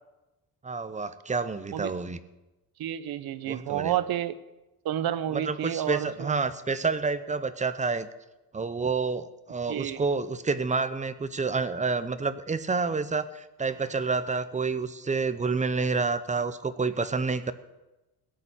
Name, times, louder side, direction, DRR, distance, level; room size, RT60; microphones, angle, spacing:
voice 1, 0.6-2.2 3.5-3.9 5.3-8.1 8.5-17.5, right 4 dB, 20° right, 13 dB, 0.6 m, -29 dB
voice 2, 2.8-4.4 4.8-6.3 9.7-10.0, right 11 dB, 75° right, 15 dB, 0.9 m, -30 dB
17.0 x 6.9 x 8.9 m, 1.0 s
wide cardioid pair, 160°, 37 cm